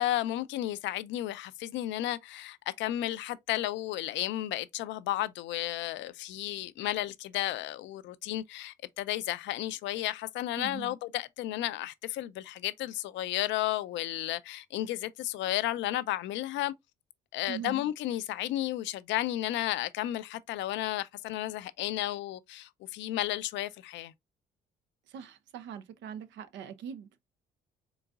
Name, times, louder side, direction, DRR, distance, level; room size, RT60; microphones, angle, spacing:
voice 1, 0.0-16.7 17.3-24.1, left 14 dB, 70° left, 0.4 m, -33 dB
voice 2, 10.6-10.9 17.5-17.8 25.1-27.2, right 8 dB, 70° right, 0.6 m, -41 dB
3.9 x 3.7 x 2.3 m
supercardioid pair, 65°, 19 cm